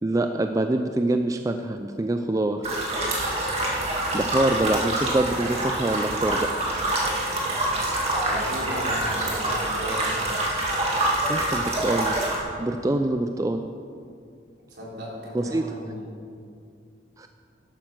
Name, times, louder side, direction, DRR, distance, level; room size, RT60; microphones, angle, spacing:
voice 1, 0.0-2.7 4.1-6.5 11.3-12.2 12.6-13.7 15.3-15.9 17.2-17.3, right 1 dB, 20° right, 6 dB, 0.4 m, -25 dB
sound 1, 2.6-12.4, right 1 dB, 35° right, 2.1 m, -26 dB
voice 2, 8.2-10.1 14.7-16.0, equal, 70° right, -5 dB, 3.7 m, -35 dB
11.5 x 9.2 x 6.1 m, 2.3 s
head